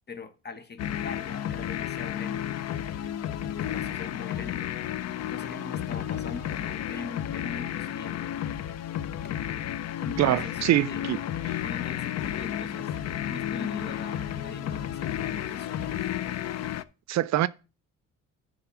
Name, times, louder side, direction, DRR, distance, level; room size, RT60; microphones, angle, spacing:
voice 1, 0.1-2.6 3.4-5.0 5.3-8.2 9.2-9.4 10.0-16.2, left 4 dB, 35° left, 1.2 m, -42 dB
sound 1, 0.8-16.8, left 11 dB, 60° left, 0.5 m, -32 dB
voice 2, 10.2-11.2 11.5-11.6 17.1-17.5, right 14 dB, 65° right, 0.5 m, -24 dB
10.0 x 3.7 x 6.1 m
cardioid pair, 90°, 30 cm